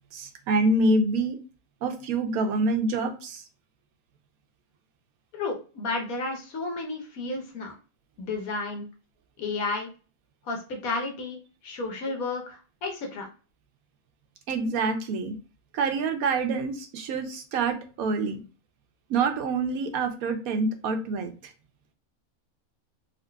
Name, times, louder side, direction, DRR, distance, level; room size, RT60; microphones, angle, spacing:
voice 1, 0.1-1.4 1.8-3.4 14.5-15.4 15.7-18.4 19.1-21.3, right 3 dB, 90° right, 6 dB, 1.1 m, -26 dB
voice 2, 5.3-7.7 8.2-8.9 9.4-9.9 10.4-11.4 11.6-13.3, left 3 dB, 80° left, 2 dB, 1.3 m, -32 dB
3.8 x 2.8 x 2.2 m, 0.35 s
omnidirectional pair, 1.5 m